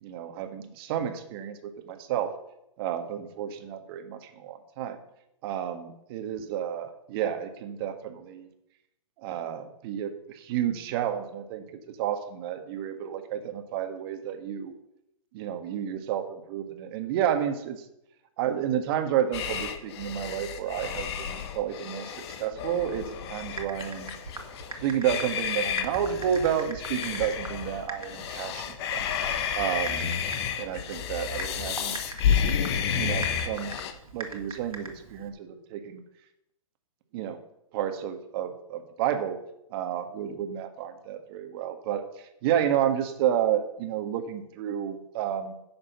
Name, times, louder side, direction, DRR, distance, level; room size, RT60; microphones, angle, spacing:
voice 1, 0.0-2.3 2.8-5.0 5.4-8.5 9.2-14.8 15.3-17.8 18.4-24.1 24.8-29.1 29.5-30.1 30.6-32.0 32.9-33.8 34.1-36.0 37.1-37.4 37.7-39.4 39.7-42.0 42.4-45.5, right 9 dB, 45° right, 7 dB, 1.6 m, -31 dB
sound 1, 19.3-33.9, left 8 dB, 50° left, 1.4 m, -31 dB
Typing, 23.4-35.3, right 3 dB, 90° right, 2.3 m, -43 dB
11.5 x 7.6 x 5.8 m, 0.82 s
hypercardioid pair, 125°, 18 cm